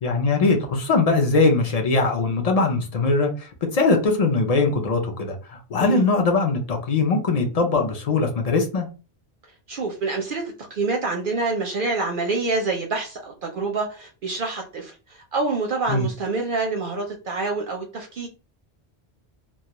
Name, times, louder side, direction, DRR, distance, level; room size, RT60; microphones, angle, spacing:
voice 1, 0.0-8.9 15.9-16.1, left 3 dB, 50° left, 3 dB, 0.5 m, -21 dB
voice 2, 9.7-18.3, right 3 dB, 60° right, 2 dB, 0.6 m, -27 dB
2.2 x 2.1 x 2.8 m, 0.33 s
omnidirectional pair, 1.1 m